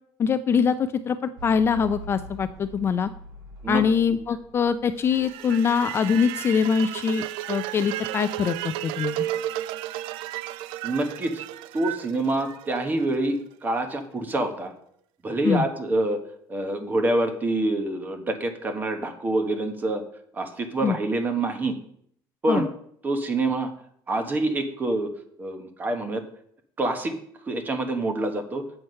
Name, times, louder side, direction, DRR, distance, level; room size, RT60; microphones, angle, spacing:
voice 1, 0.2-3.1 3.7-9.3 15.4-15.6 20.8-21.0 22.5-22.7, left 6 dB, 30° left, 11 dB, 0.3 m, -23 dB
sound 1, 1.4-5.9, right 2 dB, 65° right, 4.0 m, -43 dB
sound 2, 5.1-13.2, right 13 dB, 90° right, 0.3 m, -33 dB
voice 2, 10.8-11.4 11.7-14.7 15.2-16.2 16.5-20.0 20.3-21.8 22.4-22.6 23.0-23.7 24.1-25.1 25.4-26.2 26.8-27.1 27.4-28.6, right 2 dB, 20° right, 7 dB, 1.1 m, -26 dB
7.9 x 6.9 x 5.5 m, 0.67 s
cardioid pair, 155°, 8 cm